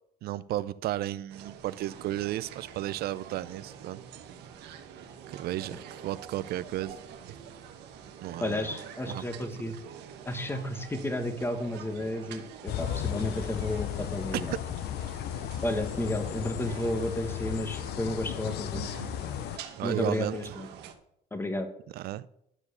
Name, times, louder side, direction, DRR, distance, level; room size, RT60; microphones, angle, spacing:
voice 1, 0.2-4.0 5.3-7.0 8.2-8.7 9.1-9.2 9.6-9.7 14.3-14.6 18.7-19.2 19.8-20.4 21.9-22.2, right 14 dB, 65° right, 0.4 m, -33 dB
sound 1, 1.3-20.9, right 8 dB, 80° right, 1.2 m, -46 dB
voice 2, 8.4-9.8 10.2-14.5 15.6-18.8 19.8-20.7 21.3-21.7, left 1 dB, 15° left, 1.4 m, -32 dB
sound 2, 12.7-19.6, left 11 dB, 75° left, 0.5 m, -35 dB
11.5 x 4.7 x 6.7 m
cardioid pair, 110°, 17 cm